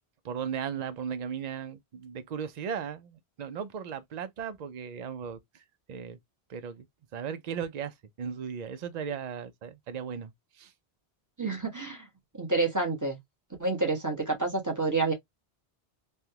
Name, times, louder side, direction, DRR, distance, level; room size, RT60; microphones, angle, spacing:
voice 1, 0.2-5.4 5.9-6.2 6.5-6.9 7.1-10.3 10.6-10.7, right 7 dB, 50° right, 0.5 m, -36 dB
voice 2, 11.4-12.1 12.4-13.2 13.6-15.1, right 3 dB, 15° right, 1.1 m, -28 dB
3.4 x 2.3 x 2.7 m
omnidirectional pair, 1.1 m